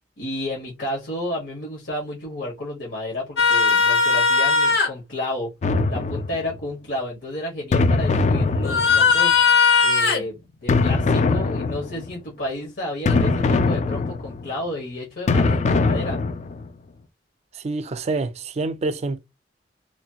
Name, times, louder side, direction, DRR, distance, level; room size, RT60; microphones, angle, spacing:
voice 1, 0.2-5.5 5.9-16.2, left 1 dB, 85° left, 1.3 m, -31 dB
sound 1, 3.4-4.9 8.6-10.2 13.1-13.2, left 5 dB, 65° left, 0.8 m, -18 dB
sound 2, 5.6-6.6 7.7-9.3 10.7-12.1 13.1-14.5 15.3-16.7, left 3 dB, 40° left, 0.3 m, -21 dB
voice 2, 17.5-19.2, right 3 dB, 35° right, 0.4 m, -27 dB
3.1 x 2.3 x 2.8 m
head